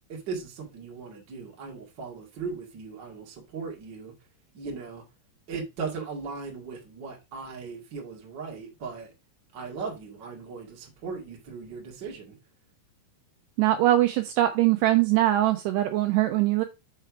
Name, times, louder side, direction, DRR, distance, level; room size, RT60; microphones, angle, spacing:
voice 1, 0.1-4.1 4.5-5.0 5.5-9.1 9.5-12.3, right 5 dB, 40° right, 1.6 m, -38 dB
voice 2, 13.6-16.6, right 14 dB, 80° right, 2.5 m, -22 dB
6.8 x 4.5 x 4.6 m
omnidirectional pair, 5.2 m